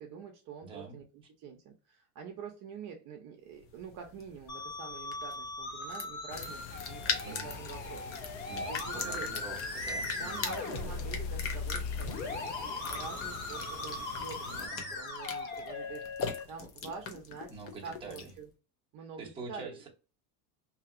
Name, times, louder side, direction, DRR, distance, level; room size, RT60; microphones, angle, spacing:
voice 1, 0.0-9.3 10.2-16.1 16.5-17.5 17.8-18.5 18.9-19.8, right 6 dB, 40° right, 2 dB, 0.8 m, -46 dB
voice 2, 0.6-1.0 7.2-7.5 8.5-10.6 14.4-15.0 17.5-18.3 19.2-19.9, right 4 dB, 10° right, -2 dB, 0.9 m, -45 dB
sound 1, 3.6-18.4, left 5 dB, 30° left, 0.5 m, -41 dB
Musical instrument, 4.5-16.4, left 3 dB, 55° left, 1.7 m, -39 dB
sound 2, 6.3-14.7, left 6 dB, 85° left, 0.7 m, -46 dB
2.8 x 2.8 x 2.5 m, 0.32 s
supercardioid pair, 130°, 49 cm